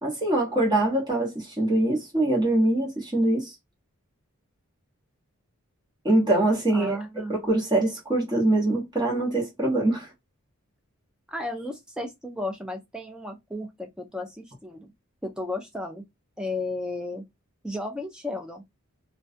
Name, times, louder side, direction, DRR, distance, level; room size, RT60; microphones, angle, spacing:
voice 1, 0.0-3.5 6.0-10.1, right 1 dB, 20° right, 1.0 m, -24 dB
voice 2, 6.7-7.3 11.3-14.9 15.2-16.0 16.4-17.2 17.6-18.6, left 2 dB, 5° right, 0.4 m, -34 dB
2.3 x 2.2 x 2.4 m
head